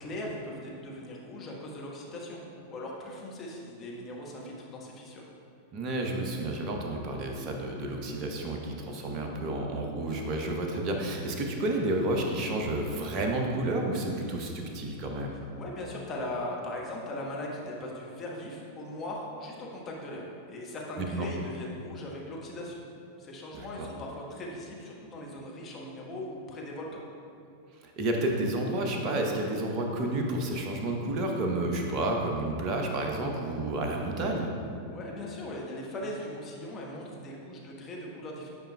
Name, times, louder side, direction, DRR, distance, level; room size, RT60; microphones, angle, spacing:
voice 1, 0.0-2.4 2.7-5.2 15.6-22.8 23.2-27.0 34.9-38.5, left 1 dB, 25° left, -3 dB, 1.0 m, -39 dB
voice 2, 5.7-15.4 21.1-21.3 23.5-23.9 27.8-34.5, right 1 dB, 35° right, 2 dB, 0.8 m, -30 dB
8.9 x 4.9 x 2.2 m, 2.5 s
figure-of-eight pair, 90°, 0 cm